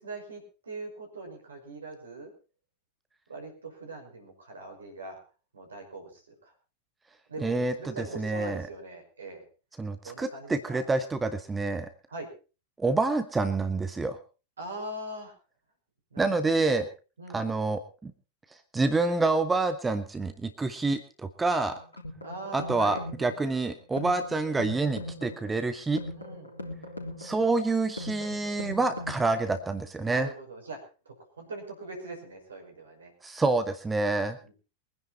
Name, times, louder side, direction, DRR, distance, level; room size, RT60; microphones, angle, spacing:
voice 1, 0.0-2.3 3.3-5.2 5.5-6.5 7.3-9.4 10.0-10.8 12.1-12.3 14.6-15.3 16.1-16.8 17.2-17.4 22.2-23.0 26.1-26.5 30.1-30.8 31.1-33.1 34.4-34.5, right 2 dB, 70° right, 4 dB, 5.7 m, -41 dB
voice 2, 7.4-8.6 9.8-11.9 12.8-14.2 16.2-16.9 17.3-18.1 18.7-21.0 21.4-21.8 22.5-26.0 27.2-30.3 33.2-34.4, right 3 dB, 10° right, 9 dB, 1.1 m, -27 dB
sound 1, 21.7-29.7, left 1 dB, 80° left, 3.5 m, -40 dB
23.0 x 10.5 x 4.3 m, 0.35 s
figure-of-eight pair, 90°, 0 cm